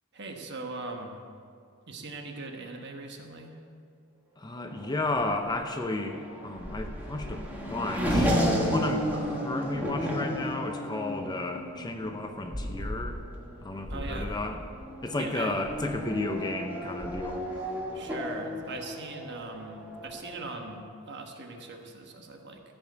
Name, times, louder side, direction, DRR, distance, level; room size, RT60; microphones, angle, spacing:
voice 1, 0.1-1.2 1.9-3.6 13.9-14.4 15.2-15.6 17.9-22.6, right 3 dB, 50° right, 3 dB, 1.3 m, -40 dB
voice 2, 4.4-13.2 13.6-14.6 15.0-17.6, left 2 dB, 20° left, 5 dB, 0.6 m, -33 dB
Race car auto racing / Accelerating revving vroom, 4.6-20.8, equal, 10° right, 1.6 m, -33 dB
15.0 x 5.4 x 8.1 m, 2.3 s
head